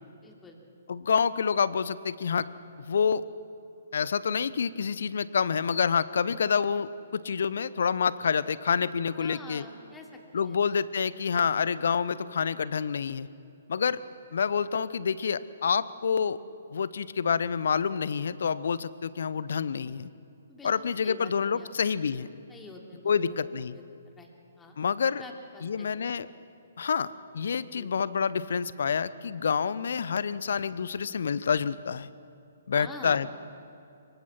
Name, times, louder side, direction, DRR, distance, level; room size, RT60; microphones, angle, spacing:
voice 1, 0.2-0.6 9.1-10.6 16.1-16.3 20.5-21.7 22.5-23.4 23.7-24.3 24.6-24.8 25.1-26.0 27.7-27.9 32.7-33.2, left 3 dB, 10° left, 2 dB, 3.0 m, -47 dB
voice 2, 0.9-2.5 2.9-3.2 3.9-9.6 10.3-13.3 13.7-14.0 14.3-16.4 16.7-20.1 20.6-22.3 23.0-23.8 24.8-25.2 25.6-26.3 26.8-32.1 32.7-33.3, left 6 dB, 60° left, 17 dB, 0.8 m, -28 dB
26.0 x 23.5 x 5.9 m, 2.7 s
figure-of-eight pair, 125°, 0 cm